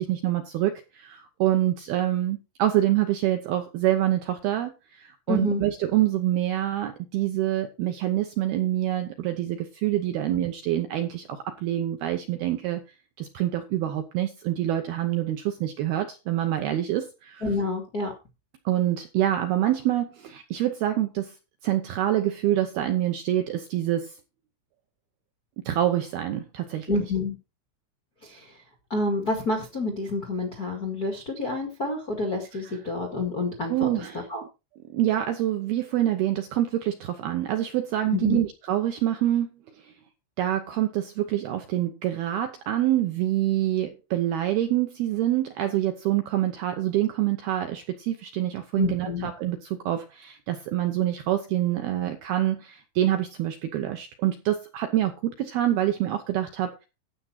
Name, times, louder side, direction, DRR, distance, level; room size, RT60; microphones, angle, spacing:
voice 1, 0.0-12.8 13.2-17.4 18.7-21.3 21.6-24.2 25.7-26.9 32.5-32.8 33.7-34.3 34.9-39.5 39.8-39.9 40.4-56.8, right 13 dB, 80° right, 2.3 m, -26 dB
voice 2, 5.3-5.7 17.4-18.1 26.9-27.4 28.2-28.5 28.9-33.9 34.3-34.4 38.1-38.5 48.8-49.3, left 2 dB, 45° left, 1.2 m, -28 dB
12.5 x 8.5 x 4.3 m
omnidirectional pair, 5.5 m